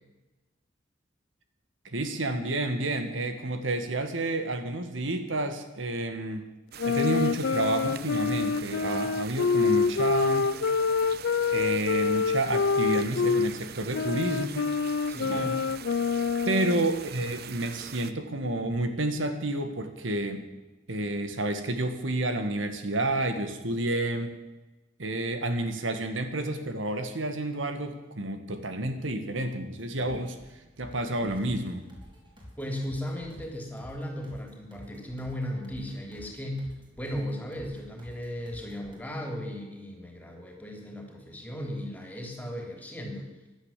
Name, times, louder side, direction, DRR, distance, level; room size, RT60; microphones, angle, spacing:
voice 1, 1.9-6.5 6.9-10.5 11.5-14.7 15.3-15.6 16.5-20.5 20.9-24.3 25.0-30.4 30.8-31.9, right 2 dB, 85° right, 8 dB, 1.8 m, -30 dB
sound 1, 6.7-18.1, right 8 dB, 55° right, 0.8 m, -43 dB
sound 2, 6.8-13.5 13.9-16.9, left 5 dB, 70° left, 0.5 m, -26 dB
voice 2, 15.1-15.5 32.6-36.7 37.0-43.3, equal, 10° left, 2 dB, 3.5 m, -36 dB
sound 3, 29.8-39.0, equal, 25° right, 4.6 m, -51 dB
16.5 x 11.0 x 7.5 m, 1.1 s
head